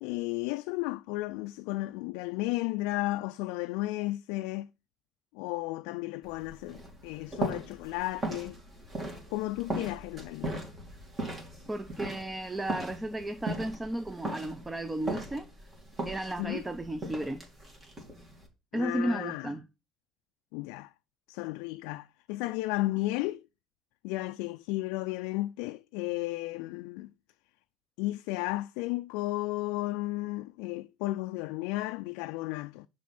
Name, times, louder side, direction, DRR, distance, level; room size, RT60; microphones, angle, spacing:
voice 1, 0.0-4.7 5.3-8.6 9.3-10.7 16.4-16.6 18.7-19.5 20.5-20.9 21.3-23.4 24.0-27.1 28.0-32.9, left 19 dB, 80° left, 0.3 m, -33 dB
sound 1, 6.2-18.5, right 1 dB, 30° right, 2.8 m, -39 dB
voice 2, 11.7-15.5 16.1-17.4 18.7-19.6, right 1 dB, 15° right, 0.6 m, -34 dB
6.1 x 4.4 x 5.8 m
supercardioid pair, 95°, 0 cm